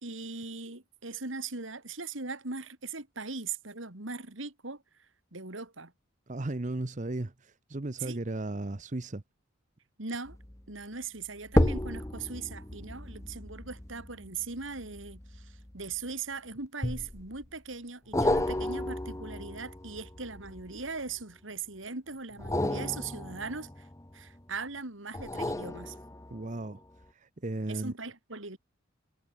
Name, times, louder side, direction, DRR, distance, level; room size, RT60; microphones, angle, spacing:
voice 1, 0.0-4.8 5.3-5.9 8.0-8.2 10.0-10.4 10.7-23.9 24.1-25.9 27.7-28.6, right 4 dB, 75° right, 3.3 m, -39 dB
voice 2, 6.3-9.2 26.3-26.8 27.1-27.9, right 2 dB, 40° right, 0.8 m, -35 dB
sound 1, 10.3-10.6 11.5-16.1 16.8-17.4 18.1-21.1 22.3-24.4 25.1-26.6 27.0-27.1, left 1 dB, 15° left, 1.0 m, -33 dB
head